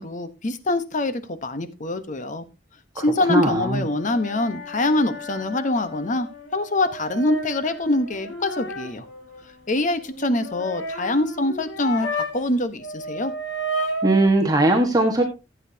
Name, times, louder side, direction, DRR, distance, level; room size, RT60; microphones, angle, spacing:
voice 1, 0.0-2.4 3.0-9.1 9.7-13.3, left 2 dB, 45° left, 11 dB, 1.0 m, -24 dB
voice 2, 3.3-3.8 14.0-15.2, right 2 dB, 20° right, 1 dB, 1.4 m, -19 dB
sound 1, 3.7-12.5 12.8-14.3, right 1 dB, 85° left, 1.9 m, -33 dB
15.5 x 8.2 x 2.8 m, 0.26 s
head